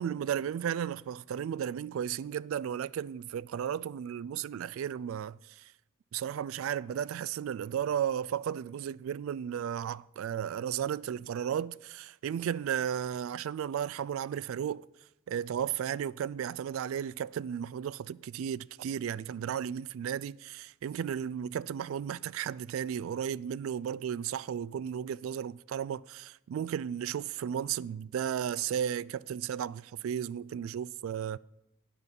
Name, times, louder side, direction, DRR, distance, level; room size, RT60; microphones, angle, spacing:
voice 1, 0.0-5.6 6.1-14.8 15.3-31.4, right 9 dB, 85° right, 0.3 m, -34 dB
12.0 x 8.4 x 5.3 m
head